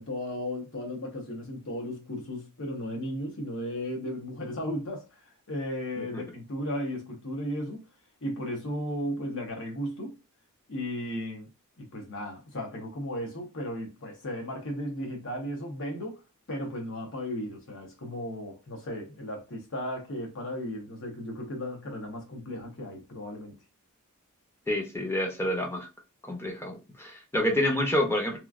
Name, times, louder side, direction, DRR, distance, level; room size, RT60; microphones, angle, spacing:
voice 1, 0.0-5.0 5.5-7.9 8.2-10.1 10.7-11.5 11.8-16.2 16.5-23.6, equal, 60° left, 0.9 m, -35 dB
voice 2, 24.7-25.9 26.2-28.4, left 1 dB, 10° left, 0.7 m, -28 dB
3.0 x 2.4 x 2.4 m
head